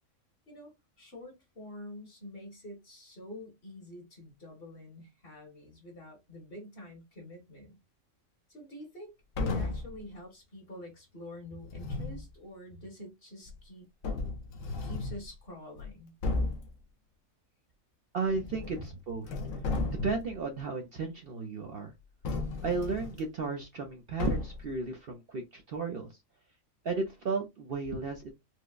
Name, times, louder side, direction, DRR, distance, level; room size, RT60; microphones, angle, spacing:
voice 1, 0.5-7.8 8.5-9.1 9.4-13.9 14.8-16.1, left 1 dB, 45° left, 1.5 m, -47 dB
sound 1, 9.3-10.0 11.6-12.2 13.5-13.6 14.0-15.2 15.8-15.9 16.2-16.7 18.3-18.9 19.2-20.3 22.2-23.2 24.2-24.7, left 3 dB, 75° left, 1.1 m, -34 dB
voice 2, 18.1-19.3 20.0-21.9 22.6-26.1 26.8-28.3, right 4 dB, 60° right, 0.7 m, -34 dB
4.5 x 2.0 x 2.3 m
omnidirectional pair, 1.4 m